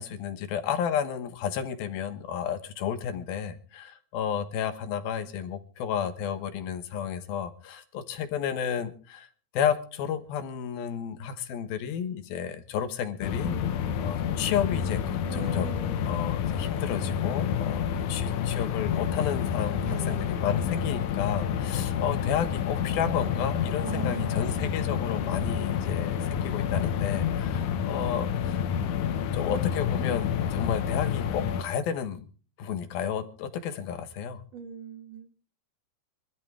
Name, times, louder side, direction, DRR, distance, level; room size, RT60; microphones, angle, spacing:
voice 1, 0.0-9.3 9.5-13.6 14.0-15.8 16.0-28.6 29.3-32.3 32.6-34.4, left 8 dB, 85° left, 10 dB, 3.1 m, -32 dB
sound 1, 13.2-31.6, left 8 dB, 65° left, 2.3 m, -29 dB
voice 2, 15.3-16.1 19.8-20.3 23.8-24.9 34.5-35.3, right 9 dB, 65° right, 7 dB, 1.6 m, -40 dB
24.0 x 13.0 x 3.6 m, 0.38 s
omnidirectional pair, 4.1 m